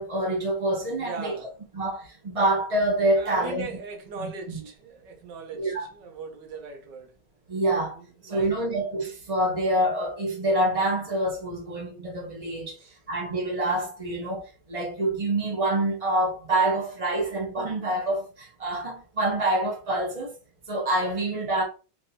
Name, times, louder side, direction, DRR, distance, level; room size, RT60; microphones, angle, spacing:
voice 1, 0.0-1.3 1.7-3.7 4.2-4.6 5.6-5.9 7.5-8.0 8.2-12.8 13.1-20.3 20.7-21.6, right 1 dB, 50° right, 0.4 m, -26 dB
voice 2, 1.0-1.5 3.2-7.1 7.9-8.6 12.8-13.0, right 4 dB, 70° right, 1.5 m, -39 dB
4.5 x 2.7 x 2.8 m
omnidirectional pair, 2.1 m